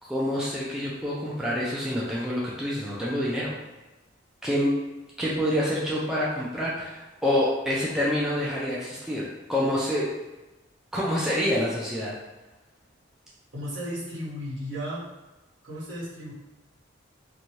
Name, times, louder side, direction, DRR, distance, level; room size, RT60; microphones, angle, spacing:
voice 1, 0.0-3.5 4.4-4.7 5.2-10.1 10.9-12.1, left 1 dB, 5° right, -7 dB, 0.3 m, -27 dB
voice 2, 13.5-15.0 15.6-16.3, equal, 70° right, -9 dB, 1.3 m, -34 dB
2.6 x 2.2 x 3.0 m, 1.1 s
head